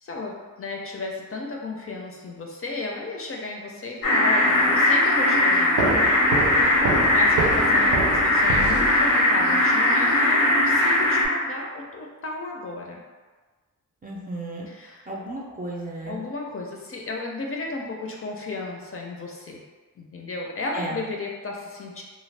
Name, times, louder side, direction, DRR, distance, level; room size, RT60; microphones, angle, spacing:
voice 1, 0.0-6.1 7.1-13.0 14.7-15.1 16.1-19.6 20.0-22.0, left 3 dB, 45° left, -1 dB, 0.5 m, -34 dB
sound 1, 4.0-11.3, left 1 dB, 85° left, 0.7 m, -19 dB
sound 2, 5.8-9.5, right 3 dB, 85° right, 0.6 m, -27 dB
voice 2, 14.0-14.7 15.1-16.2 20.7-21.0, right 2 dB, 25° right, -3 dB, 0.5 m, -34 dB
2.4 x 2.2 x 3.2 m, 1.3 s
cardioid pair, 85°, 32 cm